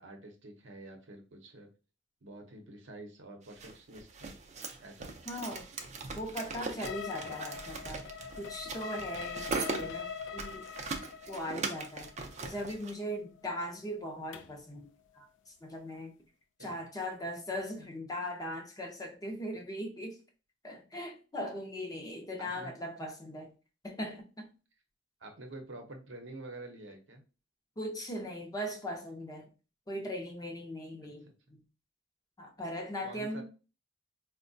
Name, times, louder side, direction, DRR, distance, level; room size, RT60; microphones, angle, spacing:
voice 1, 0.0-1.7 2.2-4.3 4.8-5.1 16.6-16.9 22.4-22.7 25.2-27.2 33.0-33.4, right 2 dB, 70° right, 3 dB, 0.7 m, -48 dB
sound 1, 3.5-12.9, right 4 dB, 35° right, 0.4 m, -40 dB
voice 2, 5.3-5.7 6.2-8.0 8.4-10.7 11.3-12.1 12.4-14.9 15.1-16.1 16.6-20.2 20.6-23.5 23.8-24.5 27.8-29.5 29.9-31.6 32.4-33.4, equal, 20° left, 3 dB, 0.6 m, -39 dB
sound 2, 6.8-14.7, left 7 dB, 75° left, 0.4 m, -43 dB
4.5 x 2.2 x 2.6 m, 0.33 s
head